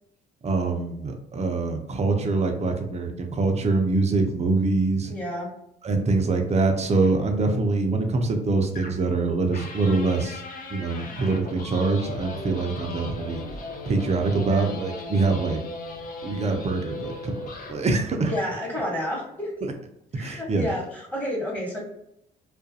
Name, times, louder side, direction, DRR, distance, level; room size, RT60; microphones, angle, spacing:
voice 1, 0.4-5.1 5.8-10.4 10.7-13.4 13.9-15.6 16.2-17.4 17.7-18.3 20.2-20.7, right 3 dB, 35° right, 4 dB, 0.6 m, -24 dB
voice 2, 5.0-5.5 14.4-14.7 18.3-19.5 20.1-21.8, left 1 dB, 10° left, -3 dB, 1.2 m, -30 dB
sound 1, 6.9-7.1 8.8-9.1 9.5-17.9 18.3-18.6, left 2 dB, 45° left, 0.6 m, -38 dB
2.4 x 2.2 x 2.7 m, 0.78 s
supercardioid pair, 60°, 20 cm